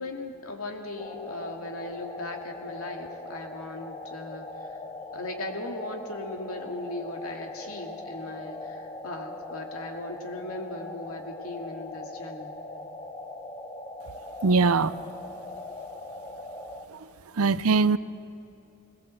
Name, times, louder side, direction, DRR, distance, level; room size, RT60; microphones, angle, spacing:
voice 1, 0.0-4.8 5.1-12.5, left 2 dB, 75° left, 3 dB, 2.5 m, -38 dB
sound 1, 1.0-16.8, left 2 dB, 20° left, 1.0 m, -40 dB
voice 2, 14.4-14.9 17.4-18.0, right 4 dB, 80° right, 16 dB, 0.6 m, -21 dB
21.5 x 19.5 x 7.8 m, 2.9 s
head